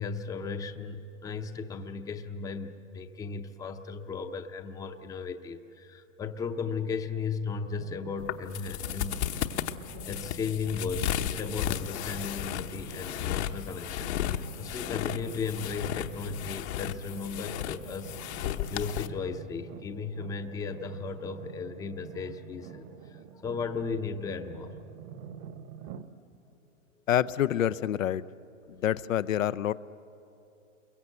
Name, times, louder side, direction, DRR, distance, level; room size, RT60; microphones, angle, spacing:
voice 1, 0.0-9.6 10.0-18.2 18.7-24.7 28.7-28.8, left 5 dB, 10° left, 9 dB, 0.6 m, -36 dB
sound 1, 7.8-26.1, right 8 dB, 35° right, 0.9 m, -47 dB
sound 2, 8.2-19.1, left 11 dB, 60° left, 1.1 m, -34 dB
voice 2, 27.1-28.2 28.7-29.7, left 11 dB, 90° left, 15 dB, 0.7 m, -27 dB
28.5 x 22.5 x 8.0 m, 2.9 s
hypercardioid pair, 135°, 39 cm